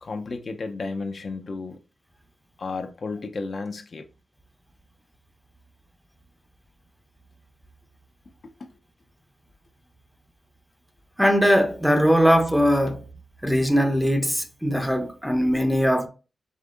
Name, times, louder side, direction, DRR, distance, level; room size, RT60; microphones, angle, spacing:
voice 1, 0.0-1.8 2.6-4.1 8.6-8.7 12.1-12.2, left 3 dB, 55° left, 0.6 m, -33 dB
voice 2, 11.2-13.1 13.4-16.1, equal, ahead, 0.7 m, -20 dB
5.0 x 3.3 x 2.5 m
cardioid pair, 80°, 0 cm